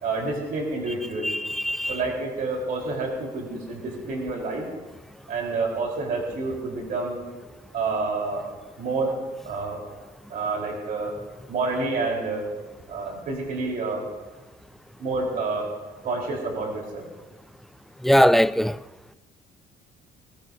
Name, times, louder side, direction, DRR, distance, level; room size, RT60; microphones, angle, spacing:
voice 1, 0.0-1.3 1.9-4.7 5.3-7.2 7.7-8.4 8.8-9.2 9.4-9.8 10.3-11.1 11.5-12.5 12.9-14.0 15.0-15.7 16.0-17.1, right 3 dB, 55° right, 3.8 m, -28 dB
voice 2, 1.2-2.0 18.0-18.8, equal, ahead, 0.3 m, -20 dB
20.5 x 20.5 x 2.6 m
cardioid pair, 110°, 17 cm